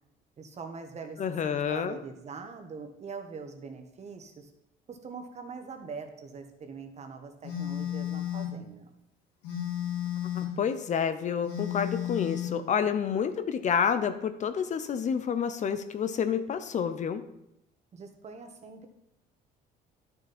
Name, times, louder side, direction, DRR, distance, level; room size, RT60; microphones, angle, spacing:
voice 1, 0.4-4.5 4.9-8.9 17.9-18.9, right 5 dB, 40° right, 6 dB, 1.5 m, -43 dB
voice 2, 1.2-2.0 10.3-17.2, left 7 dB, 45° left, 11 dB, 0.7 m, -29 dB
Telephone, 7.4-8.6 9.4-10.6 11.4-12.6, left 11 dB, 90° left, 2.6 m, -33 dB
11.0 x 6.8 x 4.3 m, 0.83 s
cardioid pair, 110°, 17 cm